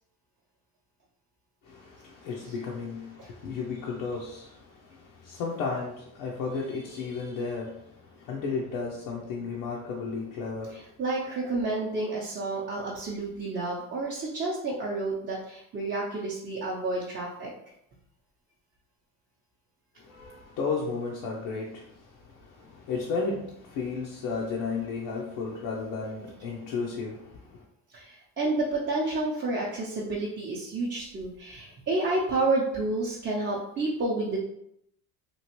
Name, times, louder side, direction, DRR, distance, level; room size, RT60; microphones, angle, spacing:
voice 1, 1.6-10.9 20.0-27.6, left 4 dB, 80° left, -3 dB, 0.7 m, -34 dB
voice 2, 10.7-17.5 27.9-34.4, right 2 dB, 30° right, -6 dB, 0.6 m, -30 dB
3.0 x 2.5 x 2.9 m, 0.77 s
cardioid pair, 100°, 42 cm